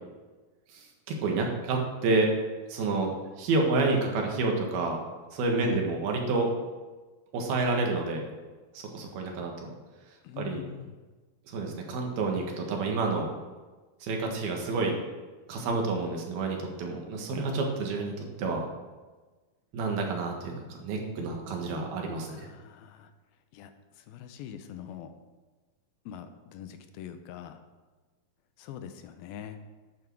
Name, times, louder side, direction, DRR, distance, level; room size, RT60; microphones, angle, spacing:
voice 1, 0.7-2.3 2.7-3.1 3.4-5.0 5.3-6.5 7.3-8.3 8.8-9.7 10.4-10.6 11.5-13.3 14.0-15.0 15.5-18.6 19.7-22.5, right 3 dB, 85° right, 1 dB, 3.6 m, -29 dB
voice 2, 10.2-11.0 22.3-23.1 23.5-23.7 24.0-25.1 26.1-27.6 28.6-29.6, left 9 dB, 85° left, 8 dB, 2.6 m, -43 dB
11.5 x 8.6 x 4.7 m, 1.3 s
omnidirectional pair, 4.2 m